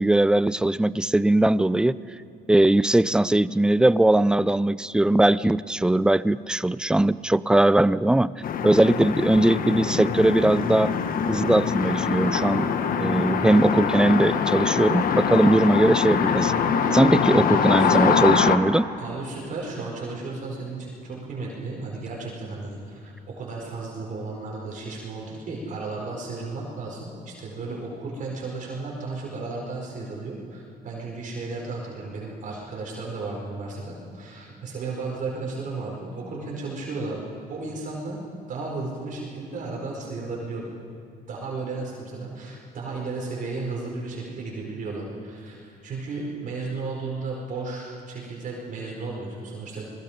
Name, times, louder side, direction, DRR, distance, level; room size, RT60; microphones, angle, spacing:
voice 1, 0.0-2.0 2.5-8.3 8.6-10.9 11.3-12.7 13.0-16.5 16.9-18.9, right 1 dB, 5° right, 17 dB, 0.4 m, -20 dB
sound 1, 8.4-18.6, left 6 dB, 55° left, 1.4 m, -23 dB
voice 2, 19.0-37.2 37.5-38.2 38.5-40.7 41.3-49.9, right 3 dB, 50° right, -3 dB, 4.9 m, -34 dB
27.0 x 21.5 x 5.2 m, 2.3 s
cardioid pair, 110°, 17 cm